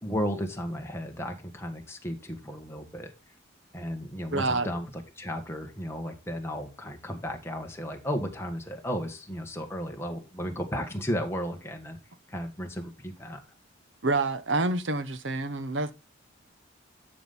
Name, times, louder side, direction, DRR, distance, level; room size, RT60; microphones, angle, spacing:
voice 1, 0.0-3.1 3.7-12.0 12.3-13.4, equal, 15° left, 1.5 m, -34 dB
voice 2, 4.3-4.7 14.0-15.9, right 2 dB, 70° right, 1.0 m, -27 dB
11.5 x 5.2 x 4.2 m
head